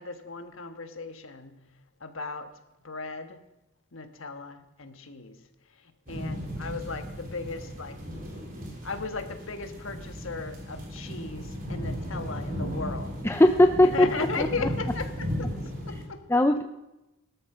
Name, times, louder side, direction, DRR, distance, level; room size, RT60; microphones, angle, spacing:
voice 1, 0.0-1.6 2.0-2.5 2.8-3.4 3.9-5.4 6.1-8.0 8.8-13.1 13.8-16.2 16.5-16.6, left 3 dB, 65° left, 8 dB, 1.5 m, -36 dB
sound 1, 6.1-16.0, equal, 40° right, 3.8 m, -35 dB
voice 2, 13.2-14.5 16.3-16.6, left 1 dB, 10° left, 7 dB, 0.5 m, -20 dB
18.5 x 13.0 x 5.6 m, 0.95 s
head